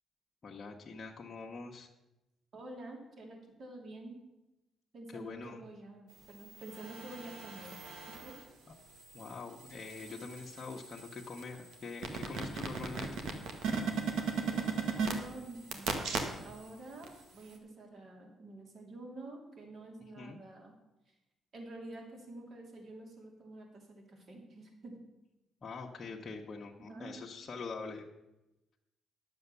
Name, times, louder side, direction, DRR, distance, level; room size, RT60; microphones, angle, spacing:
voice 1, 0.4-1.9 5.1-5.6 9.1-13.3 20.2-20.4 25.6-28.1, left 4 dB, 40° left, -2 dB, 1.1 m, -44 dB
voice 2, 2.5-4.2 4.9-7.8 8.2-8.4 10.0-10.1 14.4-20.7 21.1-21.2 21.5-25.0 26.8-27.1, right 2 dB, 50° right, 2 dB, 2.7 m, -48 dB
sound 1, 6.4-8.4 8.9-16.7 17.0-17.1, right 5 dB, 80° right, 1.5 m, -38 dB
10.5 x 7.0 x 6.8 m, 0.96 s
cardioid pair, 90°, 0 cm